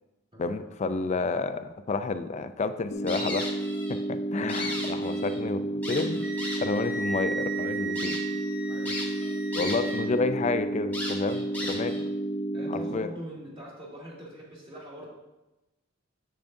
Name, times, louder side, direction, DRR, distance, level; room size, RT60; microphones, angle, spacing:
voice 1, 0.4-3.5 3.9-6.3 6.6-8.2 9.5-12.0 12.7-13.1, left 3 dB, 35° left, 11 dB, 0.4 m, -30 dB
sound 1, 2.9-12.9, right 2 dB, 75° left, 1.0 m, -31 dB
sound 2, 3.1-4.0 4.3-5.4 5.8-6.8 7.4-7.5 8.0-8.2 8.9-10.0 10.3-10.4 10.9-12.0, left 1 dB, 10° left, 1.2 m, -36 dB
Wind instrument woodwind instrument, 6.2-10.1, right 4 dB, 5° right, 0.6 m, -37 dB
voice 2, 8.6-9.0 12.5-15.1, equal, 25° right, -5 dB, 2.1 m, -43 dB
7.6 x 7.0 x 2.6 m, 1.0 s
head